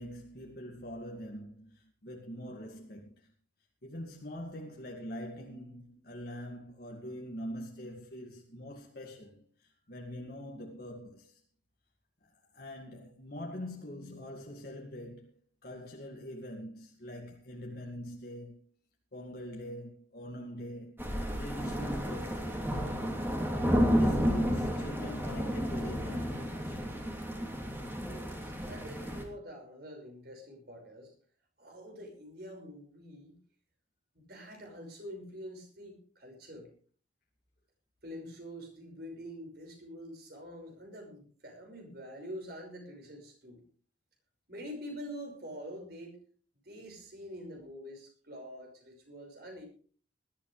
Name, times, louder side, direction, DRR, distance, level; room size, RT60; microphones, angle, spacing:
voice 1, 0.0-3.3 3.8-11.4 12.2-15.4 15.6-18.6 19.1-23.0 23.9-26.8, equal, 50° left, 2.1 m, -44 dB
sound 1, 21.0-29.2, equal, 10° right, 2.8 m, -31 dB
voice 2, 28.0-31.1 31.6-33.4 34.2-36.7 38.0-43.6 44.5-46.2 46.6-49.7, equal, 55° right, 5.6 m, -46 dB
20.5 x 13.0 x 3.3 m
head